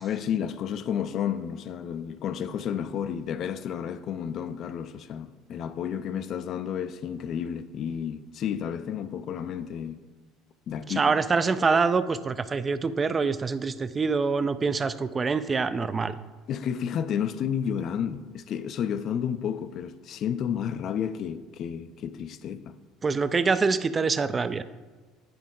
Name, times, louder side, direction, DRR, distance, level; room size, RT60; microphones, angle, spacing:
voice 1, 0.0-10.0 10.7-11.1 11.6-11.8 16.5-22.7, left 8 dB, 55° left, 0.4 m, -31 dB
voice 2, 11.0-16.1 23.0-24.6, right 4 dB, 30° right, 0.3 m, -25 dB
9.4 x 3.6 x 3.7 m
hypercardioid pair, 75°, 0 cm